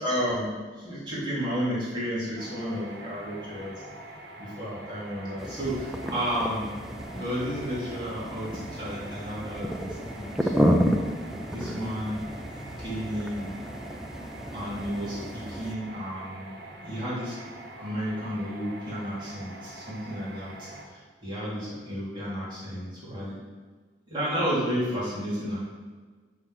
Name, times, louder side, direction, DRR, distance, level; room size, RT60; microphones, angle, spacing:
voice 1, 0.0-3.8 4.4-6.7 7.1-10.8 11.5-12.2 12.6-13.5 14.5-16.5 16.8-17.4 17.8-23.4 24.1-25.6, equal, 25° right, -10 dB, 3.0 m, -32 dB
sound 1, 2.4-20.9, right 2 dB, 90° right, 1.3 m, -45 dB
sound 2, 5.4-15.7, equal, ahead, 0.5 m, -31 dB
6.9 x 5.9 x 6.2 m, 1.4 s
head